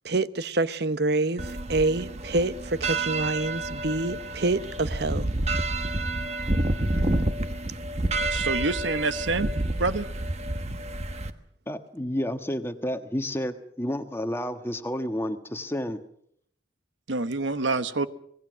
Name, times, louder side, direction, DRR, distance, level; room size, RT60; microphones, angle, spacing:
voice 1, 0.0-5.3, right 2 dB, 55° right, 0.8 m, -27 dB
sound 1, 1.4-11.3, right 2 dB, 35° right, 1.3 m, -29 dB
voice 2, 8.3-9.5 9.8-10.1 17.1-18.1, right 3 dB, 80° right, 1.2 m, -26 dB
voice 3, 11.7-16.0, equal, 15° left, 1.3 m, -30 dB
25.5 x 19.0 x 6.3 m
head